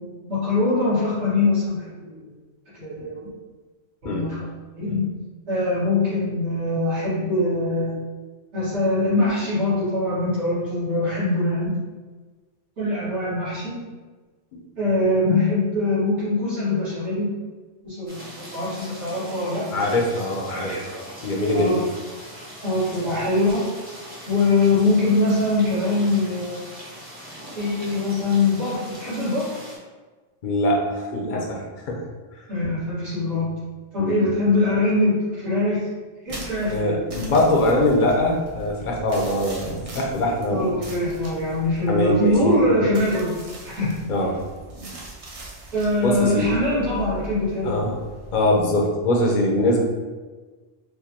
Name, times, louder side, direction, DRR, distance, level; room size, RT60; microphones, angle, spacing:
voice 1, 0.0-2.1 2.7-3.3 4.0-4.4 4.7-5.1 5.5-7.9 8.5-11.8 12.8-13.8 14.8-17.3 17.8-19.7 20.5-21.1 21.5-21.8 22.6-23.7 24.3-26.7 27.6-29.5 32.5-33.5 33.9-35.9 36.2-37.0 40.5-43.4 43.6-43.9 45.7-47.7, left 2 dB, 70° right, -12 dB, 1.9 m, -23 dB
sound 1, 18.1-29.8, equal, 30° right, 1.0 m, -41 dB
voice 2, 19.7-20.7 21.2-21.7 30.4-32.0 34.0-34.3 36.7-40.7 41.9-42.6 44.1-44.4 44.8-45.0 46.0-46.5 47.6-48.0 48.3-49.8, left 1 dB, 55° left, 0 dB, 0.6 m, -22 dB
sound 2, 36.3-48.7, right 2 dB, 45° right, 0.5 m, -41 dB
4.5 x 2.2 x 2.8 m, 1.3 s
omnidirectional pair, 1.2 m